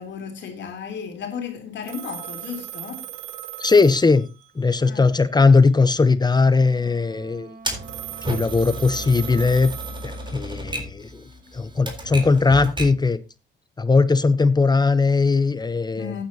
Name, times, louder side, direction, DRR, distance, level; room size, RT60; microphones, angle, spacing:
voice 1, 0.0-3.1 4.8-5.1 16.0-16.2, left 7 dB, 65° left, 3.3 m, -34 dB
Telephone, 1.8-4.7 7.8-10.7, right 13 dB, 80° right, 1.7 m, -38 dB
voice 2, 3.6-4.3 4.6-7.6 8.2-9.7 10.0-11.3 11.5-13.2 13.8-16.1, left 4 dB, 20° left, 0.9 m, -19 dB
Wind instrument woodwind instrument, 6.5-10.0, right 5 dB, 45° right, 1.7 m, -46 dB
Typewriter, 7.6-13.1, right 1 dB, 25° right, 4.0 m, -33 dB
14.5 x 9.5 x 2.9 m
cardioid pair, 90°, 20 cm